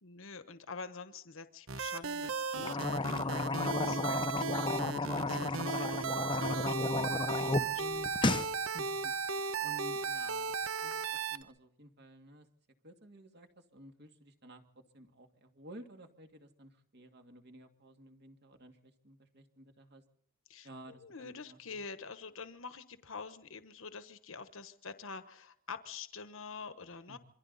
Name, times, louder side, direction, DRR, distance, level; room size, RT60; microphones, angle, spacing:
voice 1, 0.0-4.0 5.1-6.7 7.5-7.8 20.5-27.2, left 5 dB, 70° left, 10 dB, 1.2 m, -47 dB
sound 1, 1.7-11.4, right 5 dB, 75° right, 1.1 m, -36 dB
sound 2, 2.6-7.6 8.0-8.5, left 2 dB, 25° left, 0.7 m, -33 dB
voice 2, 7.2-8.1 8.7-9.1 9.6-10.5 10.8-11.0 11.3-12.5 12.8-20.0 20.6-21.8 27.1-27.2, right 1 dB, 50° right, 6 dB, 2.3 m, -53 dB
27.0 x 23.5 x 4.1 m, 0.63 s
head